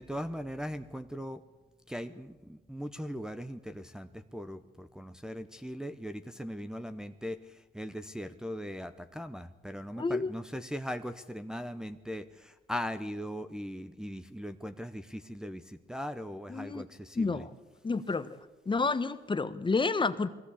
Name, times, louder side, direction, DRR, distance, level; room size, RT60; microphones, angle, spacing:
voice 1, 0.0-1.4 1.9-17.4, equal, 5° right, 7 dB, 0.9 m, -39 dB
voice 2, 10.0-10.3 16.5-16.8 17.1-17.5 17.8-18.4 18.7-20.3, left 4 dB, 25° left, 12 dB, 1.1 m, -30 dB
21.5 x 16.5 x 8.4 m, 1.1 s
cardioid pair, 90°, 20 cm